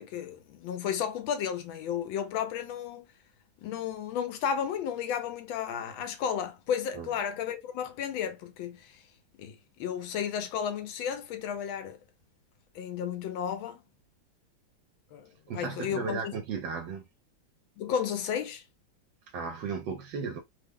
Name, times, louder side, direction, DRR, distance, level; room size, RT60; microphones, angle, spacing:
voice 1, 0.0-3.1 3.6-9.0 9.4-12.0 12.7-13.8 15.1-15.3 15.5-16.3 17.8-18.6, left 8 dB, 85° left, 1.5 m, -33 dB
voice 2, 15.5-17.0 19.3-20.4, right 5 dB, 75° right, 1.3 m, -35 dB
3.5 x 2.1 x 3.5 m
omnidirectional pair, 2.1 m